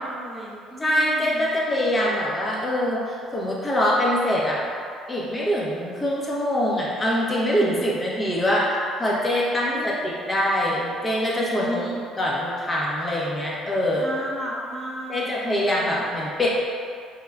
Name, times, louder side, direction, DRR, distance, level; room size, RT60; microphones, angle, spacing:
voice 1, 0.0-1.5 9.7-10.0 11.6-12.0 13.9-15.3 15.7-16.1, equal, ahead, -8 dB, 1.1 m, -34 dB
voice 2, 0.8-4.6 5.1-11.8 12.2-14.0 15.1-16.5, equal, 20° left, -5 dB, 1.1 m, -24 dB
4.8 x 3.6 x 2.3 m, 2.3 s
cardioid pair, 95°, 0 cm